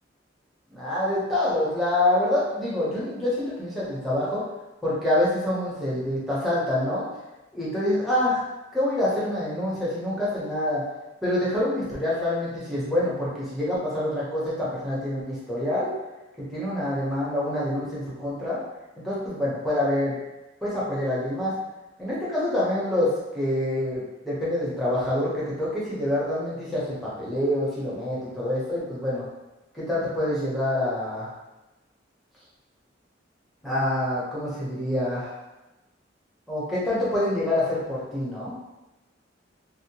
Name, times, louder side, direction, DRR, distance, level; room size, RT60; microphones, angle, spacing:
voice 1, 0.7-4.4 4.8-7.1 7.5-8.4 8.7-10.8 11.2-15.9 16.5-18.6 19.0-20.2 20.6-21.5 22.0-29.2 29.7-31.3 33.6-35.3 36.5-38.5, left 1 dB, ahead, -9 dB, 0.8 m, -26 dB
2.7 x 2.0 x 2.8 m, 1.0 s
head